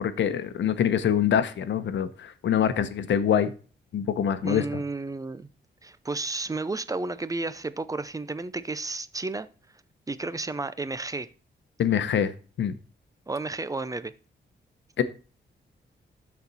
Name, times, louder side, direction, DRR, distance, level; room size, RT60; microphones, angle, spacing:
voice 1, 0.0-3.5 3.9-4.6 11.8-12.3 12.6-12.7 15.0-15.1, left 9 dB, 85° left, 0.9 m, -24 dB
voice 2, 4.4-5.5 5.8-9.5 10.1-11.3 13.3-14.1, right 3 dB, 20° right, 0.5 m, -32 dB
13.0 x 4.3 x 4.1 m
wide cardioid pair, 115°, 19 cm